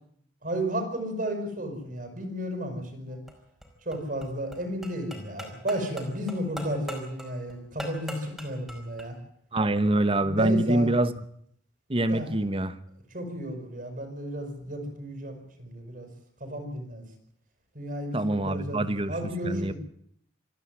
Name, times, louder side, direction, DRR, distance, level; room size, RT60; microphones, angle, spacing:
voice 1, 0.4-3.2 3.8-9.2 10.2-10.9 12.1-12.3 13.1-16.1 16.4-17.0 17.7-19.7, equal, 50° right, 4 dB, 6.1 m, -33 dB
sound 1, 3.1-9.1, equal, ahead, 4.8 m, -42 dB
voice 2, 9.5-11.1 11.9-12.8 18.1-19.1 19.4-19.7, right 1 dB, 30° right, 13 dB, 1.2 m, -25 dB
26.5 x 11.0 x 9.7 m, 0.67 s
head